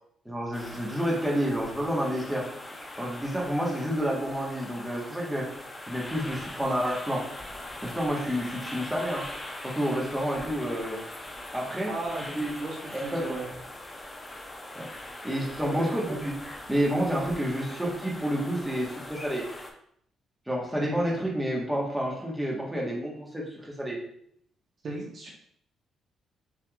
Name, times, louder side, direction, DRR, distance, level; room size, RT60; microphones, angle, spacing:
voice 1, 0.2-2.5 3.0-5.5 5.9-7.3 7.8-9.3 9.6-11.0 11.5-11.9 12.2-12.5 12.9-13.2 14.7-14.9 15.2-16.3 16.7-19.4 20.5-24.0, equal, 5° right, -3 dB, 1.3 m, -29 dB
sound 1, 0.5-19.7, left 1 dB, 15° left, 0.8 m, -41 dB
voice 2, 11.9-13.4 15.7-15.9 24.8-25.3, right 2 dB, 50° right, -2 dB, 1.1 m, -35 dB
5.9 x 3.4 x 2.4 m, 0.69 s
cardioid pair, 90°, 0 cm